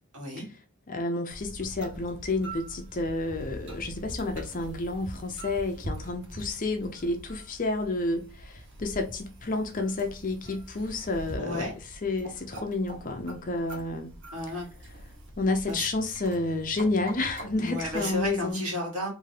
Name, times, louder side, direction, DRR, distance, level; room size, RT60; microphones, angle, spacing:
voice 1, 0.1-0.4 11.4-11.7 14.3-14.7 15.7-15.9 17.5-19.1, left 1 dB, 90° right, 1.9 m, -33 dB
voice 2, 0.9-11.7 12.0-14.1 15.4-18.7, left 2 dB, 35° left, 0.6 m, -30 dB
sound 1, 1.3-18.5, right 1 dB, 55° right, 1.0 m, -43 dB
3.6 x 2.7 x 3.2 m
head